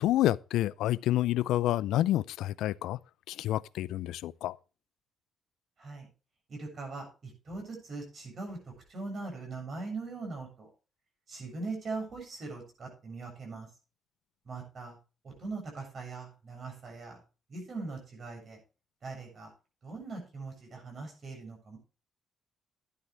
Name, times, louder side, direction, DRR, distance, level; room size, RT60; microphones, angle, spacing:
voice 1, 0.0-3.0 3.3-4.6, left 14 dB, 85° left, 0.4 m, -28 dB
voice 2, 6.5-10.7 11.3-13.7 14.4-15.0 15.2-17.2 17.5-18.6 19.0-19.5 19.8-21.8, right 3 dB, 50° right, 7.5 m, -41 dB
12.5 x 10.5 x 3.3 m
cardioid pair, 90°, 0 cm